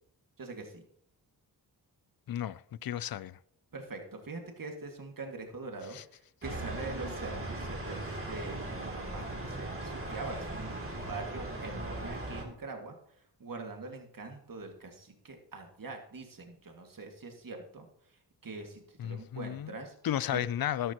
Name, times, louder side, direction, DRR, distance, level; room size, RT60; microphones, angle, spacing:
voice 1, 0.4-0.8 3.7-13.0 13.4-20.0 20.3-20.4, right 3 dB, 50° right, 2.1 m, -43 dB
voice 2, 2.3-3.4 5.9-6.0 19.0-19.7 20.0-20.9, left 11 dB, 55° left, 0.5 m, -33 dB
sound 1, 6.4-12.4, right 1 dB, 30° right, 3.0 m, -38 dB
12.5 x 12.0 x 3.0 m
cardioid pair, 65°, 42 cm